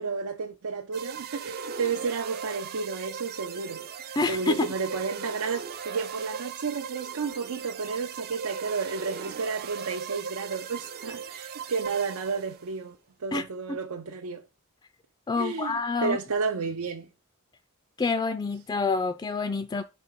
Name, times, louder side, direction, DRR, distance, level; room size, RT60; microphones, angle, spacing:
voice 1, 0.0-14.4 15.4-17.1, right 5 dB, 90° right, 0.6 m, -32 dB
sound 1, 0.9-12.7, right 6 dB, 45° right, 0.4 m, -38 dB
voice 2, 4.2-4.7 13.3-13.8 15.3-16.2 18.0-19.8, left 4 dB, 20° left, 0.3 m, -27 dB
4.8 x 4.3 x 5.1 m
head